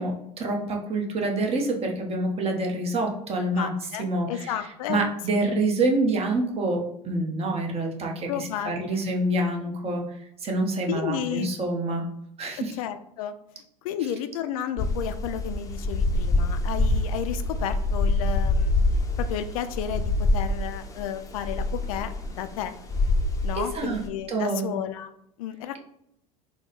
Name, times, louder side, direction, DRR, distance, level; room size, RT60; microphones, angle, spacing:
voice 1, 0.0-3.7 4.0-4.5 4.9-10.0 10.4-12.0 12.4-12.7 23.5-24.0 24.3-24.7, right 2 dB, 30° right, 1 dB, 0.9 m, -27 dB
voice 2, 3.6-5.0 8.3-9.1 10.9-11.5 12.8-13.3 13.8-18.8 19.2-22.8 23.4-25.1 25.4-25.8, left 10 dB, 65° left, 10 dB, 0.4 m, -32 dB
sound 1, 14.8-24.1, left 2 dB, 15° left, 0.6 m, -25 dB
3.7 x 2.1 x 4.0 m, 0.76 s
hypercardioid pair, 80°, 20 cm